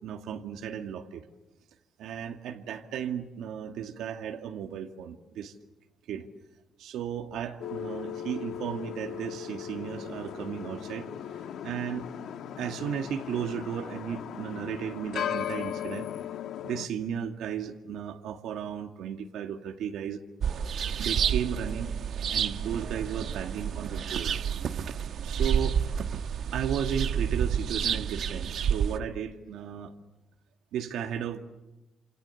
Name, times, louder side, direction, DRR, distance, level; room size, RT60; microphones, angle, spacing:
voice 1, 0.0-1.3 2.0-5.5 6.1-6.2 6.8-11.1 11.6-12.1 12.6-16.1 16.6-20.2 21.0-21.9 22.3-24.3 25.2-25.8 26.5-29.9 30.7-31.4, right 8 dB, 85° right, 3 dB, 2.2 m, -35 dB
sound 1, 7.6-16.9, left 9 dB, 65° left, 1.5 m, -37 dB
sound 2, 20.4-29.0, right 7 dB, 50° right, 1.2 m, -29 dB
29.5 x 28.0 x 7.3 m, 1.0 s
cardioid pair, 175°, 0 cm